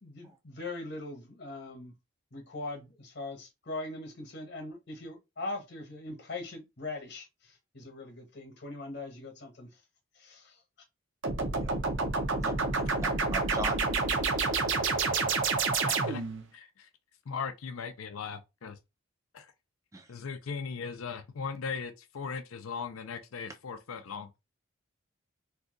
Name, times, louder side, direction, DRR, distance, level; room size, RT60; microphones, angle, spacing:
voice 1, 0.0-1.9 2.3-9.7 10.2-10.6, left 2 dB, 50° left, 1.0 m, -41 dB
sound 1, 11.2-16.4, right 3 dB, 60° right, 0.7 m, -29 dB
voice 2, 13.3-13.8 19.9-20.1, right 2 dB, 15° right, 0.4 m, -37 dB
voice 3, 15.5-16.2 16.5-16.9 17.3-18.8 19.3-19.5 20.1-24.3, left 5 dB, 80° left, 0.4 m, -38 dB
2.7 x 2.3 x 3.7 m
head